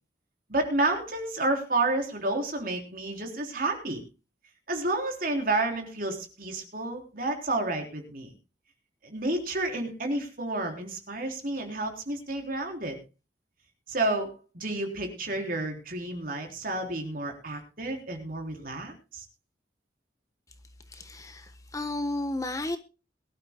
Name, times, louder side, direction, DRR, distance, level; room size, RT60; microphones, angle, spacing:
voice 1, 0.5-4.0 4.7-8.3 9.0-13.0 13.9-19.2, right 2 dB, 50° right, 3.7 m, -30 dB
voice 2, 20.9-22.8, left 2 dB, 20° left, 1.1 m, -33 dB
22.5 x 12.5 x 2.3 m
head